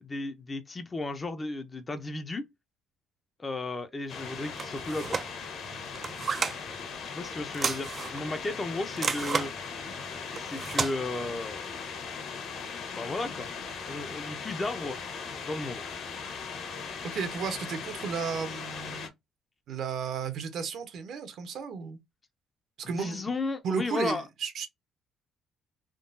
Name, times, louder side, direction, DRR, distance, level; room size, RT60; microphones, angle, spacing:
voice 1, 0.0-2.5 3.4-5.2 7.0-9.5 10.3-11.7 13.0-13.5 13.9-15.0 15.4-15.8 22.9-24.2, left 2 dB, 20° left, 0.5 m, -34 dB
sound 1, 4.1-19.1, left 5 dB, 60° left, 1.1 m, -39 dB
sound 2, 4.6-5.3 5.9-6.6 7.5-8.2 9.0-9.5 10.4-10.9, right 5 dB, 30° right, 0.3 m, -31 dB
voice 2, 17.0-19.1 19.7-22.0 22.8-23.2 23.6-24.7, right 6 dB, 60° right, 0.8 m, -34 dB
3.7 x 2.2 x 2.6 m
cardioid pair, 135°, 0 cm